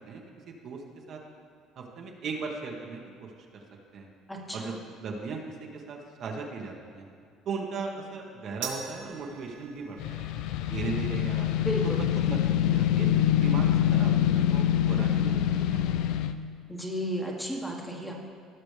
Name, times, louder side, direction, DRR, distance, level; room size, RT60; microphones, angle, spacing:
voice 1, 0.1-0.8 1.1-1.2 1.8-3.6 3.9-4.1 4.5-4.7 5.0-7.0 7.4-10.3 10.7-11.6 12.2-16.2, right 4 dB, 55° right, 0 dB, 1.4 m, -38 dB
voice 2, 4.3-4.8 11.6-12.1 16.7-18.1, equal, 5° left, 0 dB, 1.5 m, -33 dB
sound 1, 8.6-15.2, right 6 dB, 85° right, 1.6 m, -46 dB
sound 2, 10.0-16.3, left 11 dB, 80° left, 0.4 m, -25 dB
16.5 x 6.0 x 3.4 m, 2.4 s
cardioid pair, 110°, 0 cm